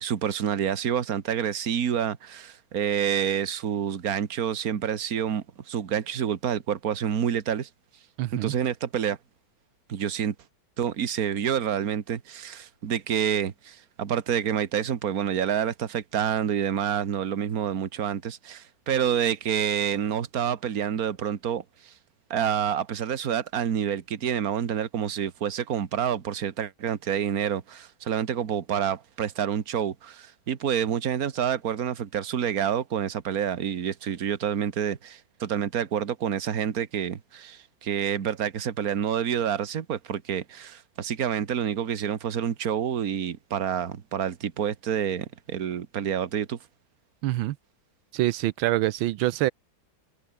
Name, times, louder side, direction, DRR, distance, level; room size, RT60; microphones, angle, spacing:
voice 1, 0.0-7.7 8.4-9.2 9.9-10.4 10.8-21.9 22.3-46.6, right 8 dB, 50° right, 1.7 m, -28 dB
voice 2, 8.2-8.5 47.2-47.6 48.1-49.5, right 16 dB, 85° right, 1.4 m, -25 dB
omnidirectional pair, 2.2 m